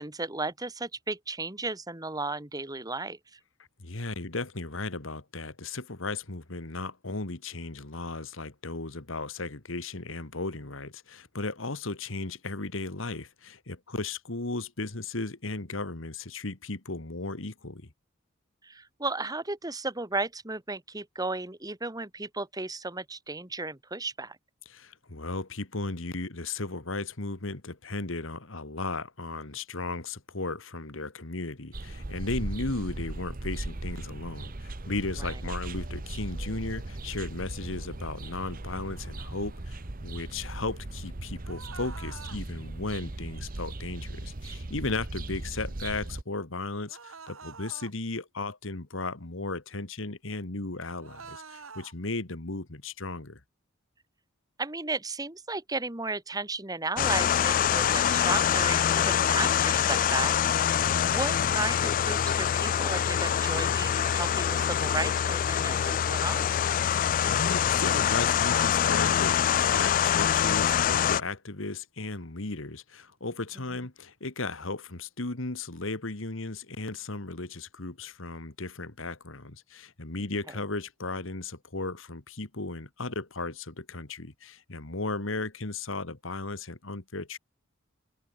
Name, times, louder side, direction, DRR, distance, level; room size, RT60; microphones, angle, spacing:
voice 1, 0.0-3.4 18.6-24.4 35.2-35.3 54.6-66.5, right 3 dB, 20° right, 1.9 m, -34 dB
voice 2, 3.8-17.9 24.7-53.4 60.8-61.2 66.9-69.4 69.7-87.4, left 3 dB, 70° left, 2.0 m, -35 dB
sound 1, 31.7-46.2, right 2 dB, 45° right, 1.1 m, -38 dB
sound 2, 41.4-42.4 46.9-47.9 51.0-51.9, right 5 dB, 80° right, 1.7 m, -46 dB
sound 3, 57.0-71.2, left 9 dB, 40° left, 0.3 m, -25 dB
open air
head